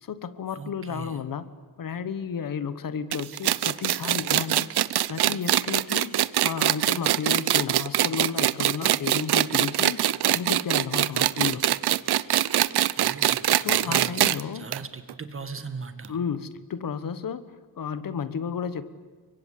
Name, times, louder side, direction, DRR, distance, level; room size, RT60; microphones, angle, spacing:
voice 1, 0.0-1.5 1.8-4.7 5.1-6.1 6.4-11.6 13.5-14.7 16.1-17.4 17.8-18.9, left 7 dB, 55° left, 13 dB, 1.3 m, -32 dB
voice 2, 0.6-1.2 13.0-16.2, right 4 dB, 35° right, 10 dB, 1.9 m, -39 dB
sound 1, 3.1-14.4 14.7-14.8 15.1-15.2 16.0-16.1, right 12 dB, 75° right, 0.8 m, -23 dB
29.5 x 24.0 x 8.5 m, 1.4 s
wide cardioid pair, 175°, 39 cm